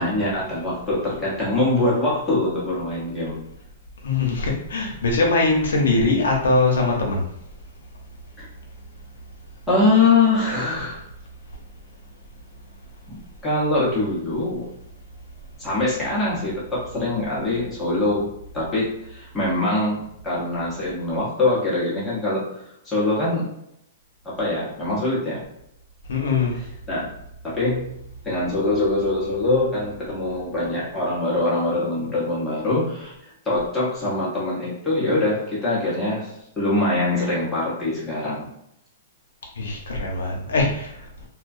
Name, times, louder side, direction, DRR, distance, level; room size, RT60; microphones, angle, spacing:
voice 1, 0.0-3.4 8.4-8.5 9.7-11.0 13.1-13.2 13.4-14.7 15.6-18.3 18.5-23.5 24.2-25.4 26.9-27.1 27.4-27.9 28.2-33.1 33.4-38.5, left 2 dB, 10° left, -8 dB, 0.9 m, -23 dB
voice 2, 4.0-7.3 26.1-26.6 39.6-41.0, left 3 dB, 90° left, 0 dB, 0.7 m, -21 dB
2.2 x 2.1 x 2.5 m, 0.78 s
hypercardioid pair, 155°, 0 cm